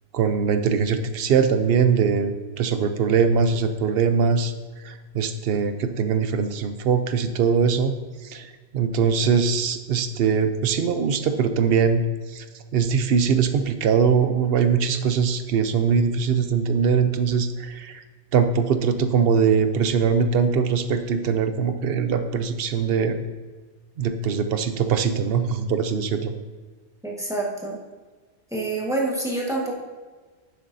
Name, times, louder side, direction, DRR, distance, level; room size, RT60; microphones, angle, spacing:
voice 1, 0.1-4.5 4.8-7.9 8.2-12.4 12.7-18.0 18.3-23.3 24.0-26.3, right 6 dB, 65° right, 9 dB, 0.8 m, -22 dB
voice 2, 27.0-27.8 28.5-29.7, right 2 dB, 5° right, -3 dB, 1.5 m, -27 dB
10.5 x 7.0 x 2.7 m, 1.4 s
omnidirectional pair, 1.1 m